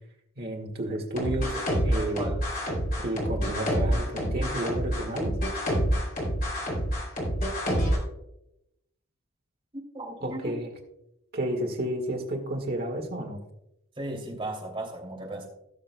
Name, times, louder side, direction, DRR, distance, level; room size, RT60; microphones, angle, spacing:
voice 1, 0.4-2.2 3.0-5.3 10.2-10.7 11.3-13.4, right 1 dB, 45° right, 2 dB, 1.8 m, -31 dB
sound 1, 1.2-8.0, equal, 40° left, 3.0 m, -27 dB
voice 2, 1.9-2.4 2.6-2.8 9.9-10.6 14.0-15.5, right 1 dB, 25° right, -1 dB, 2.7 m, -36 dB
17.5 x 6.6 x 2.3 m, 0.85 s
head